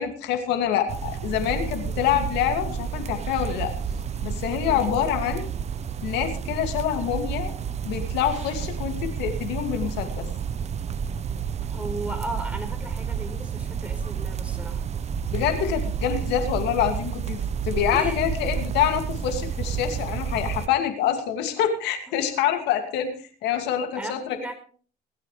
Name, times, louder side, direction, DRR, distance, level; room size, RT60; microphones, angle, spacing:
voice 1, 0.0-3.7 4.2-5.5 6.0-7.5 7.8-10.3 15.3-23.1 23.4-24.4, left 10 dB, 90° left, 6 dB, 2.5 m, -26 dB
sound 1, 0.9-20.7, right 7 dB, 40° right, 0.9 m, -30 dB
voice 2, 11.7-14.8 17.9-18.2 22.1-22.2 24.0-24.6, right 1 dB, 5° right, 5 dB, 4.5 m, -36 dB
19.5 x 13.5 x 3.3 m, 0.41 s
cardioid pair, 110°, 17 cm